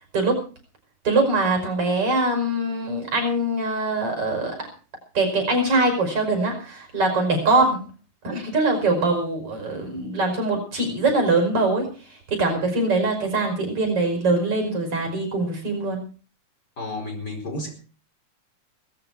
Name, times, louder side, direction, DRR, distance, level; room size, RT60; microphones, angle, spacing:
voice 1, 1.0-4.6 5.1-7.8 8.2-11.9 12.3-16.0, right 2 dB, 50° right, 4 dB, 6.4 m, -22 dB
voice 2, 16.8-17.7, left 2 dB, 35° left, 3 dB, 5.0 m, -31 dB
18.0 x 14.5 x 4.7 m, 0.38 s
omnidirectional pair, 3.4 m